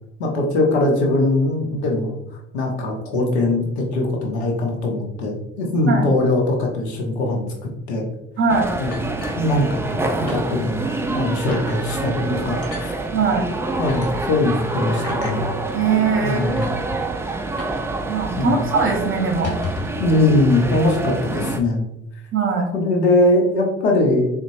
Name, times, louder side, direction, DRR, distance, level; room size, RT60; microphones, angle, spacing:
voice 1, 0.2-2.1 2.5-7.5 7.9-8.0 8.8-9.0 9.4-13.0 13.8-15.5 16.2-16.8 18.4-18.6 20.0-21.8 22.7-24.3, left 2 dB, 90° left, 0 dB, 0.7 m, -21 dB
voice 2, 8.4-8.7 13.1-13.5 15.7-16.6 18.1-19.5 22.3-22.7, right 5 dB, 40° right, 2 dB, 0.8 m, -21 dB
sound 1, 8.5-21.6, right 2 dB, 10° right, 0.3 m, -27 dB
sound 2, 8.9-10.0 10.3-10.4 10.8-11.0 11.5-11.8 12.6-12.9 13.8-14.1 15.0-15.4 16.1-16.2 16.5-16.7 17.6-17.8 18.1-18.2 18.5-18.7 19.3-20.0, left 2 dB, 50° left, 1.3 m, -33 dB
3.9 x 2.2 x 2.6 m, 0.87 s
hypercardioid pair, 55°, 32 cm